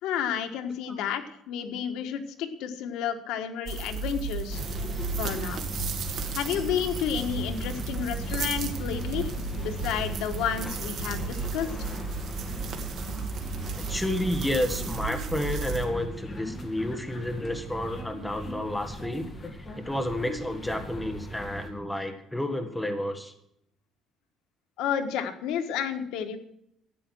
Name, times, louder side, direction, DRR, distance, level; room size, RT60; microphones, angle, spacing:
voice 1, 0.0-4.6 5.2-5.7 6.3-11.7 24.8-26.4, left 8 dB, 90° left, 7 dB, 1.5 m, -31 dB
sound 1, 3.7-15.9, right 5 dB, 50° right, 1.9 m, -34 dB
sound 2, 4.5-21.7, equal, 20° left, 2.0 m, -39 dB
voice 2, 13.8-19.3 19.8-23.3, left 1 dB, 5° left, 5 dB, 1.4 m, -31 dB
13.0 x 9.1 x 6.3 m, 0.75 s
cardioid pair, 170°, 0 cm